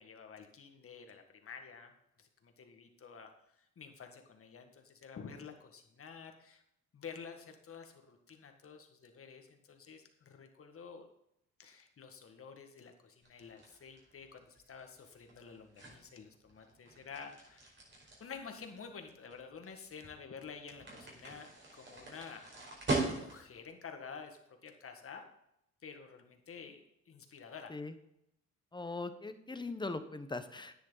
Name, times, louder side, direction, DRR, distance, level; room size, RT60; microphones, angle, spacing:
voice 1, 0.0-1.9 2.2-3.3 3.6-6.6 6.9-11.1 11.6-17.7 18.2-22.5 23.1-25.3 25.8-27.7, left 6 dB, 45° left, 5 dB, 1.8 m, -50 dB
sound 1, 13.2-23.6, right 2 dB, 40° right, 4.7 m, -42 dB
voice 2, 28.7-30.7, left 3 dB, 15° left, 10 dB, 1.0 m, -40 dB
10.0 x 9.8 x 4.0 m, 0.79 s
cardioid pair, 90°, 30 cm